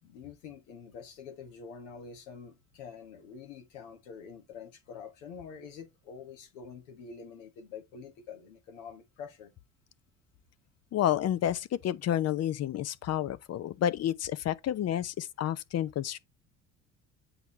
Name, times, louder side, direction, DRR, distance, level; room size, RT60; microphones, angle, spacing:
voice 1, 0.0-9.5, left 6 dB, 80° left, 1.6 m, -46 dB
voice 2, 10.9-16.2, left 11 dB, 45° left, 0.6 m, -30 dB
8.0 x 4.5 x 3.3 m
hypercardioid pair, 65°, 36 cm